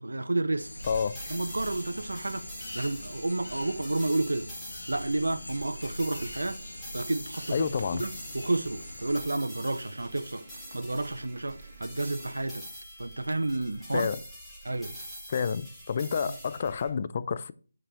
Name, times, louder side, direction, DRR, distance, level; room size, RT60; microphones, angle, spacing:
voice 1, 0.0-0.7 1.3-2.4 2.7-4.5 4.9-6.6 6.9-10.4 10.7-12.7 13.0-14.1 14.6-14.9 16.3-16.4, right 2 dB, 80° right, 0.8 m, -31 dB
sound 1, 0.6-9.2, left 1 dB, 90° left, 1.6 m, -42 dB
sound 2, 0.8-16.9, equal, 5° left, 1.9 m, -45 dB
sound 3, 7.3-12.3, right 2 dB, 55° right, 2.0 m, -52 dB
voice 2, 7.5-8.0 13.9-14.2 15.3-17.5, left 6 dB, 35° left, 0.4 m, -29 dB
8.8 x 5.3 x 4.4 m
figure-of-eight pair, 160°, 0 cm